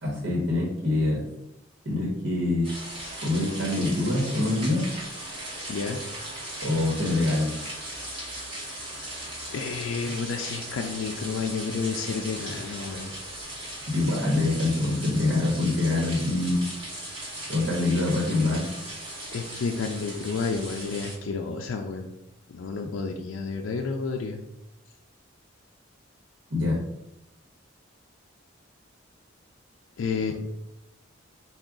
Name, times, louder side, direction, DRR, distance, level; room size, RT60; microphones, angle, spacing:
voice 1, 0.0-1.2 1.8-2.7 3.2-4.9 6.6-7.5 13.9-16.6 17.5-18.6 26.5-26.8, left 2 dB, 70° right, -3 dB, 1.1 m, -25 dB
sound 1, 2.6-21.2, right 1 dB, 25° right, 1.3 m, -38 dB
voice 2, 5.7-6.0 8.0-8.2 9.5-13.1 19.3-22.1 22.5-24.4 30.0-30.3, left 4 dB, 80° left, 3 dB, 0.4 m, -31 dB
4.6 x 2.3 x 3.7 m, 0.86 s
head